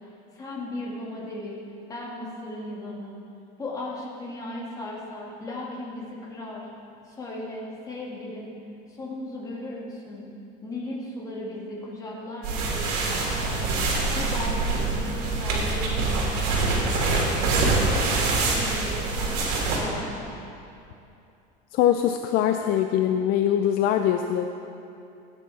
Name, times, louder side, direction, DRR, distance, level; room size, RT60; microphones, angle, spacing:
voice 1, 0.3-1.6 1.9-3.2 3.6-6.7 7.1-8.5 8.9-10.3 10.6-13.9 14.1-17.1 17.6-20.4, left 1 dB, 20° left, -4 dB, 2.2 m, -36 dB
sound 1, 12.4-19.8, right 3 dB, 75° right, 2.8 m, -25 dB
voice 2, 21.7-24.4, left 10 dB, 50° left, 7 dB, 0.5 m, -22 dB
16.0 x 9.0 x 4.2 m, 2.6 s
cardioid pair, 150°, 19 cm